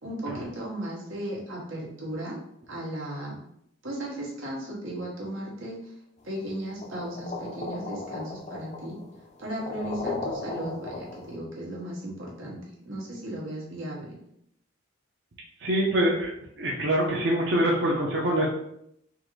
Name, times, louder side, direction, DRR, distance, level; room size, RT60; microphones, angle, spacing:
voice 1, 0.0-2.4 2.7-3.4 3.8-5.9 6.2-9.0 9.4-14.2, right 1 dB, 90° right, -3 dB, 1.1 m, -36 dB
sound 1, 6.8-11.4, left 3 dB, 35° left, 0.4 m, -36 dB
voice 2, 15.6-18.5, right 1 dB, 55° right, -3 dB, 0.6 m, -25 dB
3.6 x 2.5 x 3.0 m, 0.75 s
head